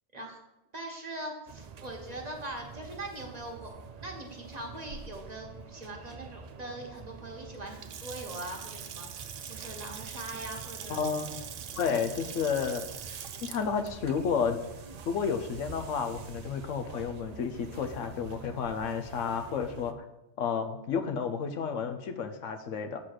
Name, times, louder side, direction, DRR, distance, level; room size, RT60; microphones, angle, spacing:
voice 1, 0.7-3.7 4.0-11.0 11.8-12.0, right 1 dB, 35° right, 2 dB, 1.1 m, -41 dB
sound 1, 1.5-19.9, right 5 dB, 70° right, 0.3 m, -47 dB
Water tap faucet / Sink (filling or washing) / Splash splatter, 7.5-15.6, right 8 dB, 85° right, 1.0 m, -44 dB
voice 2, 10.9-11.4 11.8-12.9 13.4-14.6 15.1-20.0 20.4-23.0, left 6 dB, 85° left, 7 dB, 1.1 m, -31 dB
7.6 x 4.0 x 6.5 m, 0.97 s
omnidirectional pair, 1.2 m